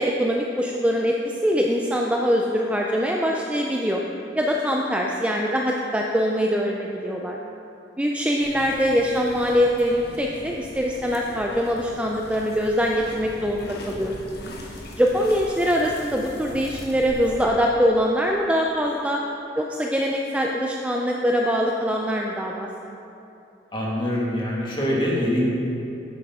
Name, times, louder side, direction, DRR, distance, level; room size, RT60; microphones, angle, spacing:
voice 1, 0.0-4.0 4.3-7.4 8.0-14.4 15.0-19.2 19.6-22.7, equal, 5° right, -1 dB, 0.4 m, -23 dB
sound 1, 8.4-17.5, left 1 dB, 60° left, 1.2 m, -40 dB
voice 2, 23.7-25.4, left 1 dB, 25° left, -5 dB, 1.8 m, -24 dB
10.0 x 8.2 x 3.6 m, 2.8 s
head